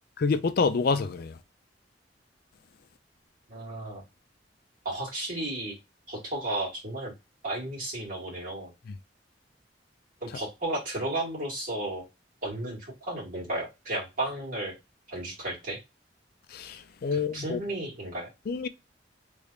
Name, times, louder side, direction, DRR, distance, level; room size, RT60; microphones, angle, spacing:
voice 1, 0.2-1.4 16.5-17.6 18.5-18.7, left 4 dB, 55° left, 0.4 m, -27 dB
voice 2, 3.5-4.0 4.8-5.7 6.1-7.1 7.4-8.7 10.2-12.0 12.4-14.7 15.1-15.8 17.1-18.3, right 1 dB, 50° right, 2.1 m, -33 dB
3.4 x 3.3 x 2.5 m
head